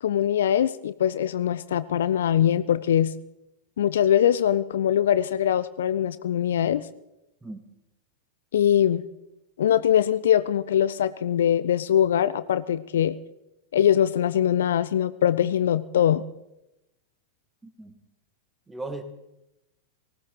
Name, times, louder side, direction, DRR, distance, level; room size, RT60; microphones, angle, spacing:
voice 1, 0.0-3.1 3.8-6.8 8.5-9.0 9.6-13.2 13.7-16.2, left 10 dB, 60° left, 16 dB, 0.5 m, -22 dB
voice 2, 17.6-17.9 18.7-19.0, right 2 dB, 10° right, 9 dB, 1.6 m, -37 dB
19.0 x 17.0 x 3.9 m, 0.90 s
figure-of-eight pair, 90°, 0 cm